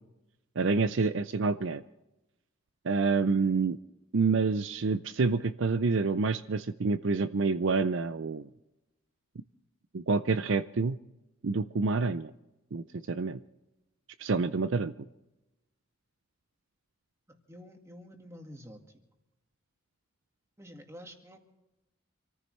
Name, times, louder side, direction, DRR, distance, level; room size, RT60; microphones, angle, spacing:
voice 1, 0.6-1.8 2.8-3.8 4.1-8.5 9.9-11.0 11.4-12.3 12.7-13.4 14.2-15.1, right 4 dB, 60° right, 12 dB, 0.5 m, -28 dB
voice 2, 17.3-19.0 20.6-21.4, equal, 15° right, 3 dB, 1.9 m, -49 dB
26.5 x 14.5 x 3.2 m, 0.97 s
head